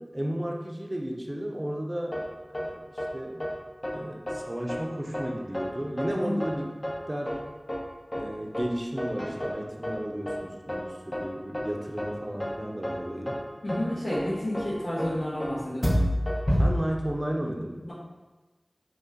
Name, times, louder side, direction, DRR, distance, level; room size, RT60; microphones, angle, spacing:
voice 1, 0.0-2.2 2.5-3.5 3.9-6.6 7.1-7.4 8.1-13.4 16.6-17.8, equal, 25° right, 0 dB, 0.7 m, -33 dB
sound 1, 2.1-2.2 2.5-2.7 3.0-3.1 3.4-3.5 3.8-3.9 4.3-4.4 4.7-4.8 5.1-5.2 5.5-5.7 6.0-6.1 6.4-6.5 6.8-6.9 7.3-7.4 7.7-7.8 8.1-8.2 8.5-8.6 9.0-9.5 9.8-9.9 10.3-10.4 10.7-10.8 11.1-11.2 11.5-11.7 12.0-12.1 12.4-12.5 12.8-12.9 13.3-13.4 13.7-13.8 14.1-14.2 14.5-14.6 15.0-15.1 15.4-15.5 15.8-16.7, equal, 35° left, 1.0 m, -28 dB
voice 2, 13.6-16.0, left 1 dB, 85° left, -13 dB, 1.4 m, -30 dB
4.2 x 3.0 x 3.7 m, 1.2 s
wide cardioid pair, 50°, 0 cm